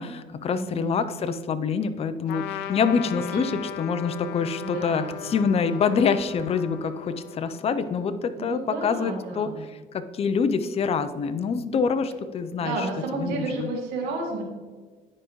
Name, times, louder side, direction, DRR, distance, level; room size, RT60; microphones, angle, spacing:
voice 1, 0.0-9.5 9.9-12.7 13.1-13.7, left 5 dB, 35° left, 11 dB, 0.5 m, -26 dB
voice 2, 0.5-0.9 3.3-3.6 4.6-5.4 8.4-9.7 12.6-14.4, right 3 dB, 85° right, 0 dB, 1.9 m, -32 dB
Trumpet, 2.3-8.1, left 11 dB, 90° left, 0.4 m, -38 dB
10.0 x 4.8 x 3.1 m, 1.5 s
cardioid pair, 110°, 17 cm